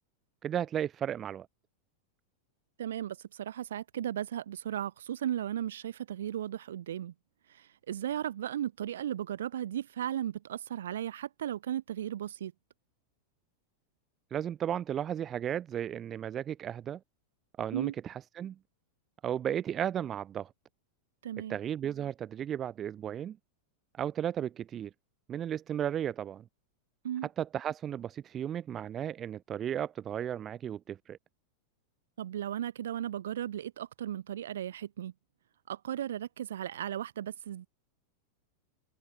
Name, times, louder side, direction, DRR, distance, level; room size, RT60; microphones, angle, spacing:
voice 1, 0.4-1.5 14.3-17.0 17.6-18.6 19.2-20.5 21.5-23.4 24.0-24.9 25.3-26.4 27.2-31.2, right 10 dB, 25° right, 0.7 m, -34 dB
voice 2, 2.8-7.1 7.5-12.5 17.7-17.9 21.2-21.6 27.0-27.3 32.2-35.1 35.7-37.7, right 10 dB, 60° right, 1.9 m, -36 dB
figure-of-eight pair, 90°, 0 cm